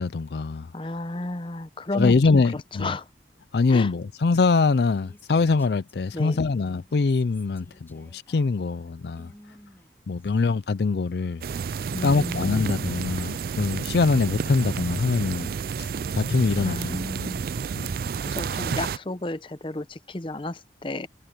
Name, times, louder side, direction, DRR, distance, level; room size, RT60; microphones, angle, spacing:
voice 1, 0.0-0.7 1.9-2.9 3.5-9.3 10.1-11.4 12.0-15.5 15.8-15.9 16.2-17.0 17.8-17.9, left 4 dB, 65° left, 0.4 m, -23 dB
voice 2, 0.7-2.4 2.8-3.1 3.7-3.9 6.1-6.5 11.9-12.7 16.6-17.5 18.3-21.1, left 2 dB, 30° left, 0.7 m, -32 dB
Female speech woman speaking, 4.5-6.4 6.8-10.5, left 1 dB, 10° left, 3.1 m, -54 dB
sound 1, 11.4-19.0, right 6 dB, 55° right, 0.3 m, -30 dB
head